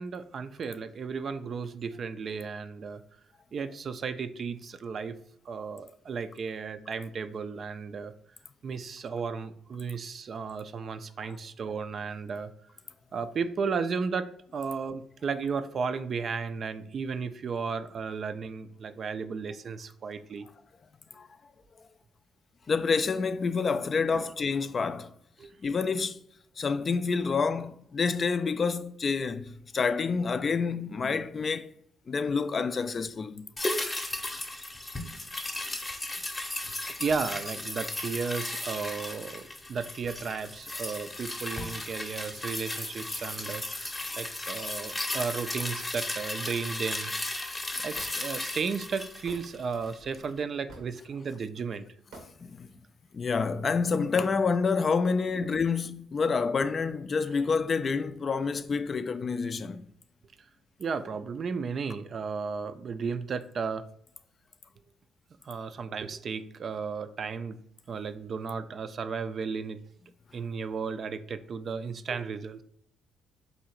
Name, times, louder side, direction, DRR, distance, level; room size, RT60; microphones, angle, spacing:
voice 1, 0.0-3.0 3.5-5.1 5.5-8.1 8.6-12.5 13.1-20.5 24.1-24.3 25.4-25.5 36.9-47.1 47.8-51.8 60.8-63.8 65.4-67.6 67.9-69.8 70.3-72.6, right 5 dB, 50° right, 0.3 m, -34 dB
voice 2, 22.7-25.1 25.6-26.2 26.6-31.7 32.1-33.5 52.4-52.7 53.1-59.8, left 5 dB, 40° left, 0.3 m, -28 dB
sound 1, 33.6-50.1 50.4-50.5, left 2 dB, 20° left, 0.7 m, -35 dB
Hammer / Wood, 47.9-48.1 49.3-49.4 50.7-51.0 52.1-52.3, right 2 dB, 90° right, 0.9 m, -46 dB
3.8 x 2.7 x 4.4 m
cardioid pair, 90°, 0 cm